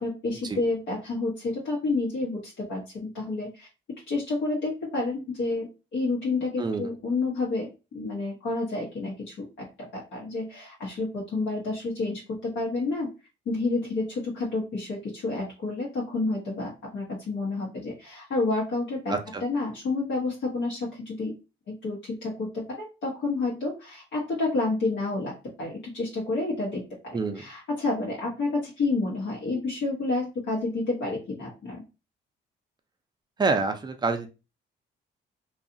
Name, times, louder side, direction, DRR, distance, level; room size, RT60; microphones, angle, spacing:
voice 1, 0.0-3.7 4.1-13.1 13.5-21.3 21.7-31.8, left 3 dB, 70° left, -4 dB, 0.9 m, -30 dB
voice 2, 19.1-19.4 27.1-27.4 33.4-34.3, right 4 dB, 20° right, 6 dB, 0.5 m, -27 dB
2.7 x 2.3 x 2.5 m, 0.29 s
cardioid pair, 90°, 20 cm